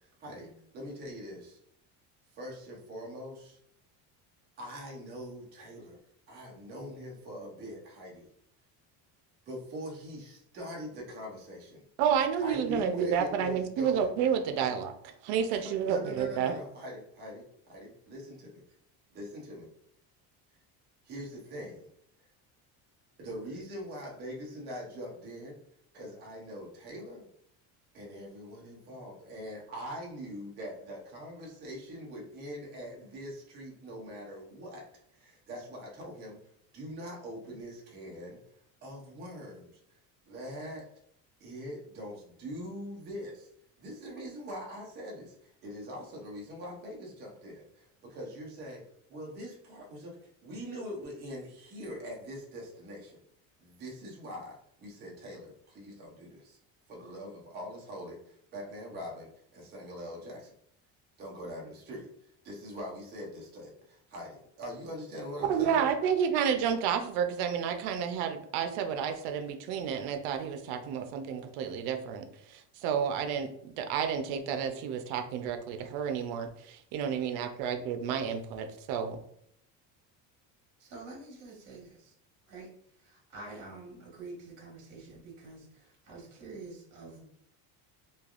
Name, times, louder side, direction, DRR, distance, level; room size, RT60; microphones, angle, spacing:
voice 1, 0.7-1.6 2.3-3.6 4.6-6.0 6.3-8.3 9.5-11.8 12.4-14.1 14.6-14.8 15.5-18.6 19.1-19.7 21.1-21.8 23.2-25.6 25.9-27.3 27.9-34.8 35.1-36.4 36.7-38.4 38.8-39.7 40.3-40.8 41.4-43.5 43.8-48.8 49.1-53.2 53.6-56.6 56.9-60.5 61.2-62.1 62.4-65.9, equal, 25° right, -2 dB, 0.6 m, -43 dB
voice 2, 12.0-14.9 15.2-16.5 65.5-79.2, right 7 dB, 90° right, 7 dB, 0.6 m, -30 dB
voice 3, 80.8-82.1 82.5-82.7 83.0-87.2, right 3 dB, 55° right, -2 dB, 1.4 m, -47 dB
3.2 x 2.3 x 2.4 m, 0.69 s
cardioid pair, 175°, 37 cm